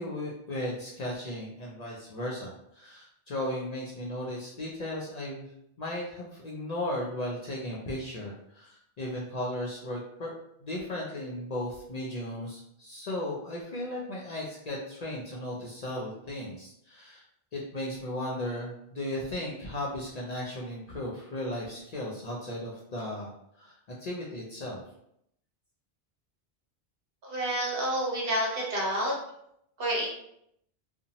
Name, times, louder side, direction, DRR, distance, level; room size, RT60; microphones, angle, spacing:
voice 1, 0.0-5.5 5.8-10.3 10.6-17.2 17.5-23.3 23.6-23.7 24.0-24.8, left 1 dB, 55° left, -3 dB, 0.5 m, -36 dB
voice 2, 27.2-29.1 29.8-30.1, right 1 dB, 65° right, -4 dB, 1.1 m, -29 dB
2.7 x 2.1 x 2.9 m, 0.75 s
omnidirectional pair, 1.0 m